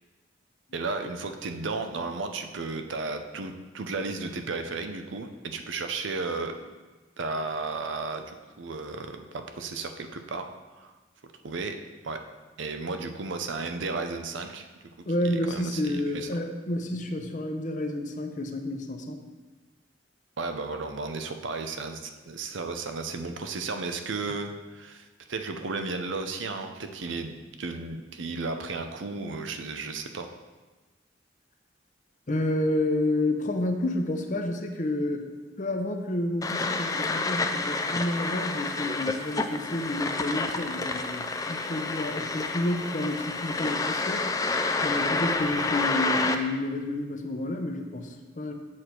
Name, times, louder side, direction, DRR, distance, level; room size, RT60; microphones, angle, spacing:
voice 1, 0.7-6.5 7.2-10.9 11.4-11.7 12.0-12.2 12.6-14.7 15.2-16.3 20.4-30.3 45.5-45.6, right 3 dB, 85° right, 6 dB, 0.7 m, -34 dB
voice 2, 15.1-19.2 32.3-35.3 35.6-44.3 44.8-48.5, left 1 dB, 40° left, 5 dB, 0.7 m, -30 dB
sound 1, 36.4-46.3, left 3 dB, 20° left, 0.4 m, -29 dB
7.4 x 6.4 x 4.5 m, 1.3 s
head